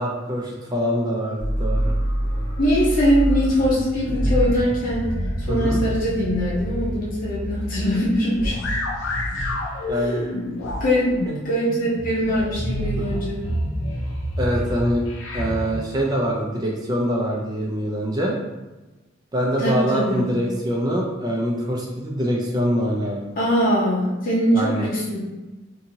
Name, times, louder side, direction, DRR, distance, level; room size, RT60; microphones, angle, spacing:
voice 1, 0.0-1.9 2.2-2.6 5.5-5.8 9.8-10.3 11.3-11.4 14.4-15.1 15.3-18.3 19.3-23.2 24.5-24.9, equal, 20° right, -2 dB, 0.4 m, -24 dB
sound 1, 1.4-15.7, equal, 85° left, 0.5 m, -27 dB
voice 2, 2.6-5.1 5.4-8.6 10.8-11.1 11.4-13.4 19.6-20.2 23.4-25.2, equal, 45° left, -8 dB, 0.8 m, -22 dB
2.7 x 2.6 x 2.7 m, 1.1 s
head